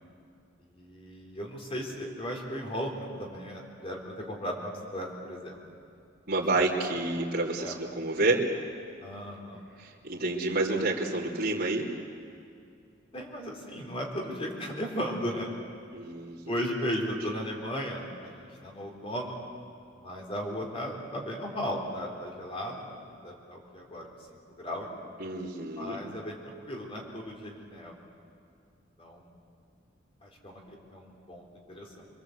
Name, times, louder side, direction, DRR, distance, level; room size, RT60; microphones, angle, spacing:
voice 1, 0.6-5.6 6.6-6.7 7.6-7.8 9.0-9.6 10.8-11.0 13.1-15.5 16.5-19.4 20.0-24.1 24.6-24.9 25.8-27.9 29.0-29.3 30.2-32.1, equal, 30° left, 0 dB, 4.0 m, -36 dB
voice 2, 6.3-8.5 9.8-11.9 15.9-16.5 25.2-26.0, right 2 dB, 50° right, -7 dB, 3.3 m, -29 dB
26.5 x 22.5 x 8.1 m, 2.4 s
head